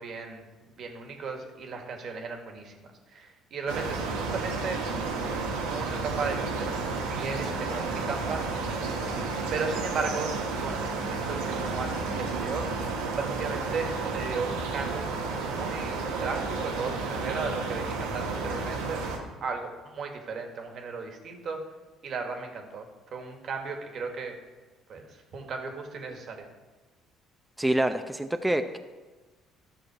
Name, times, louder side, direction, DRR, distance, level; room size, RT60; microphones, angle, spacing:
voice 1, 0.0-5.4 5.7-8.7 9.5-10.3 10.6-12.7 13.2-21.6 22.0-22.9 23.1-24.4 24.9-26.5, right 4 dB, 55° right, 4 dB, 1.8 m, -36 dB
sound 1, 3.7-19.2, right 3 dB, 85° right, 1.3 m, -31 dB
voice 2, 27.6-28.8, right 1 dB, 10° right, 7 dB, 0.7 m, -26 dB
12.5 x 6.3 x 4.8 m, 1.3 s
hypercardioid pair, 60°, 0 cm